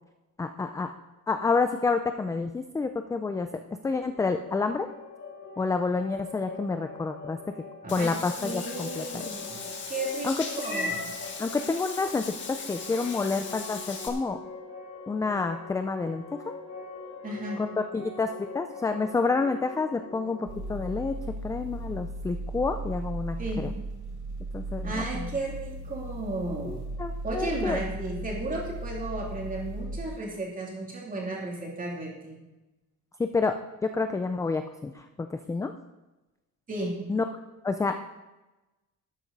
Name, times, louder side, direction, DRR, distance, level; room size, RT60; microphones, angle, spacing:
voice 1, 0.4-0.9 1.3-3.5 3.8-4.9 5.6-7.4 7.9-9.2 10.2-10.4 10.7-10.9 11.4-14.4 15.1-16.2 17.9-21.1 21.4-23.4 23.6-23.7 24.5-25.3 26.7-27.8 33.2-33.6 33.8-35.7 37.1-37.2 37.6-38.0, left 4 dB, 10° left, 7 dB, 0.3 m, -29 dB
sound 1, 3.9-21.7, left 3 dB, 65° left, 4.9 m, -44 dB
voice 2, 7.8-11.1 17.2-17.6 23.4-23.7 24.8-26.8 27.2-32.4 36.7-36.9, right 2 dB, 25° right, -1 dB, 2.8 m, -34 dB
Meow / Water / Bathtub (filling or washing), 7.9-14.1, left 4 dB, 35° left, 1.6 m, -37 dB
sound 2, 20.4-30.1, right 1 dB, 55° right, 3.9 m, -36 dB
12.5 x 8.6 x 5.3 m, 1.1 s
cardioid pair, 175°, 33 cm